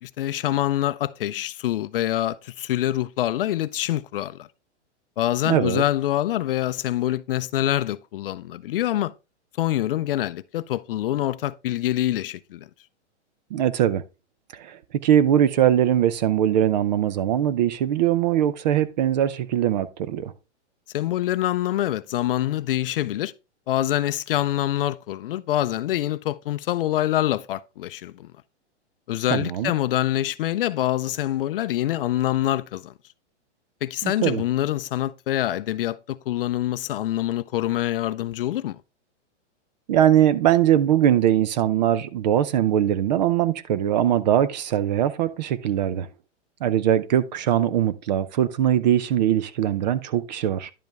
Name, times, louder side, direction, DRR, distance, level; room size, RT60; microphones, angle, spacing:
voice 1, 0.0-4.5 5.2-9.1 9.6-12.7 20.9-23.3 23.7-28.3 29.1-32.9 33.8-38.8, left 13 dB, 50° left, 0.5 m, -25 dB
voice 2, 5.4-5.8 13.5-14.0 14.5-20.3 29.3-29.7 34.0-34.4 39.9-46.1 46.6-50.7, right 10 dB, 40° right, 0.5 m, -21 dB
10.5 x 5.2 x 3.5 m
hypercardioid pair, 155°, 36 cm